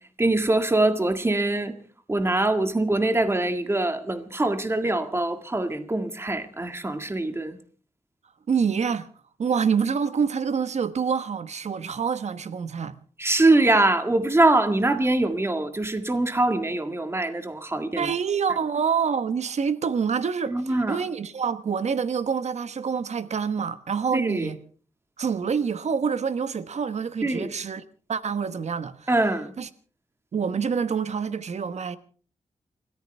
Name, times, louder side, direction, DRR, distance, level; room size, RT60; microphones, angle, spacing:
voice 1, 0.2-1.7 2.1-7.6 13.2-18.1 20.5-21.0 24.1-24.5 27.2-27.5 29.1-29.5, right 2 dB, 20° right, 1.9 m, -23 dB
voice 2, 8.5-9.1 9.4-13.0 18.0-24.6 25.2-27.8 28.1-29.1 29.6-29.7 30.3-32.0, right 6 dB, 65° right, 1.2 m, -26 dB
30.0 x 14.0 x 3.4 m
wide cardioid pair, 105°, 12 cm